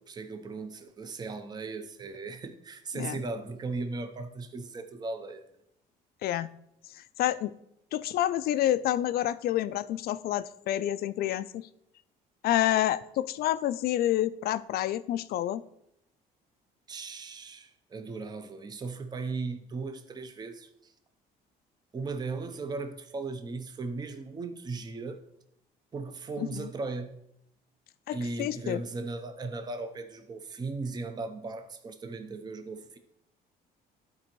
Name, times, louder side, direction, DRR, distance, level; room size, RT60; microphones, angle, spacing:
voice 1, 0.0-5.5 16.9-20.9 21.9-25.2 25.9-27.2 28.1-33.0, right 3 dB, 25° right, 0.6 m, -37 dB
voice 2, 7.2-7.5 7.9-11.6 12.4-15.6 26.4-26.7 28.1-28.8, left 12 dB, 65° left, 0.4 m, -28 dB
12.0 x 4.3 x 3.0 m
cardioid pair, 110°, 17 cm